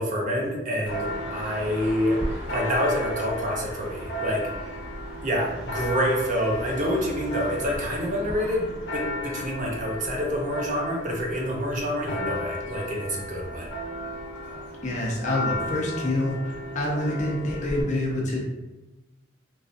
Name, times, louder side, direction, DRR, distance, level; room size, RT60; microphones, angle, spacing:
voice 1, 0.0-4.7 5.2-13.7, equal, 40° right, -2 dB, 0.6 m, -27 dB
Church bell, 0.9-17.8, left 1 dB, 75° left, 0.8 m, -34 dB
voice 2, 14.8-18.4, left 1 dB, 40° left, -2 dB, 0.5 m, -27 dB
3.0 x 2.6 x 2.5 m, 1.1 s
head